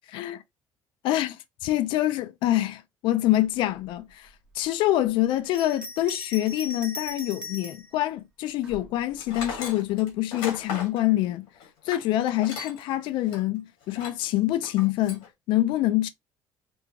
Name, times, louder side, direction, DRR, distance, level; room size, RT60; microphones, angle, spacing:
voice 1, 0.1-0.4 1.0-11.5 11.8-16.1, left 14 dB, 70° left, 0.4 m, -26 dB
Bell, 5.4-7.9 8.6-9.6, left 3 dB, 10° right, 0.8 m, -39 dB
Tools, 9.2-12.9 13.3-13.4 13.9-14.3 14.6-15.3, left 5 dB, 90° left, 1.8 m, -37 dB
5.3 x 2.2 x 2.8 m
cardioid pair, 155°, 9 cm